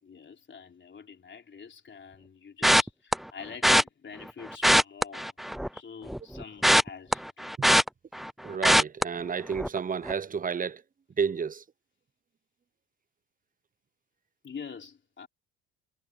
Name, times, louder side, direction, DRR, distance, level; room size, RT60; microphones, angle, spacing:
voice 1, 0.0-5.3 5.7-7.5 14.4-15.3, left 6 dB, 35° left, 3.9 m, -46 dB
sound 1, 2.6-3.1 3.6-3.8 4.5-5.8 6.1-8.3 8.6-9.0 9.5-9.8 10.1-10.2, equal, ahead, 0.4 m, -21 dB
voice 2, 8.4-10.8 11.2-11.6, right 6 dB, 25° right, 0.9 m, -31 dB
hypercardioid pair, 70°, 33 cm